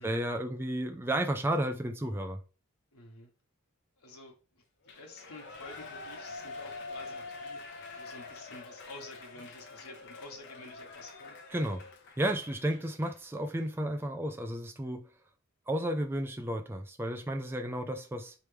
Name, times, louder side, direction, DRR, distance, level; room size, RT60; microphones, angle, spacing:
voice 1, 0.0-2.4 11.5-11.8 12.2-15.1 15.7-18.3, right 1 dB, 10° right, 0.3 m, -32 dB
voice 2, 2.9-3.3 4.0-4.6 5.0-11.4 12.8-12.9, left 2 dB, 85° left, 1.3 m, -50 dB
Shout / Cheering, 4.8-13.2 13.6-13.7, left 3 dB, 50° left, 0.8 m, -46 dB
4.5 x 3.2 x 3.3 m
head